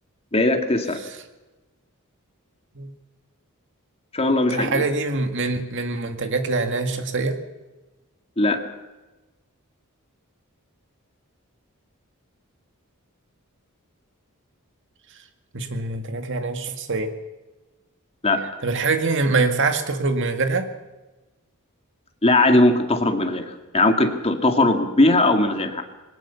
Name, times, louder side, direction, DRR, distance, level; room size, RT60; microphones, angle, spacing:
voice 1, 0.3-1.0 4.1-4.9 8.4-8.6 18.2-18.4 22.2-25.8, left 2 dB, 30° left, 5 dB, 2.2 m, -19 dB
voice 2, 4.5-7.4 15.5-17.1 18.6-20.7, right 3 dB, 60° right, 7 dB, 2.1 m, -24 dB
21.0 x 18.5 x 7.1 m, 1.1 s
head